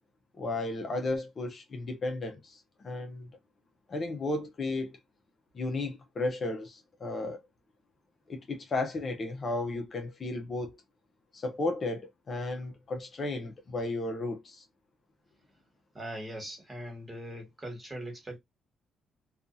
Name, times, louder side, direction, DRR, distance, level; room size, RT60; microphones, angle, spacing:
voice 1, 0.3-3.3 3.9-5.0 5.5-7.4 8.3-10.8 11.3-14.6, left 2 dB, 40° left, 0.7 m, -34 dB
voice 2, 15.9-18.4, right 1 dB, 15° right, 1.6 m, -40 dB
2.6 x 2.4 x 2.6 m
cardioid pair, 90°, 0 cm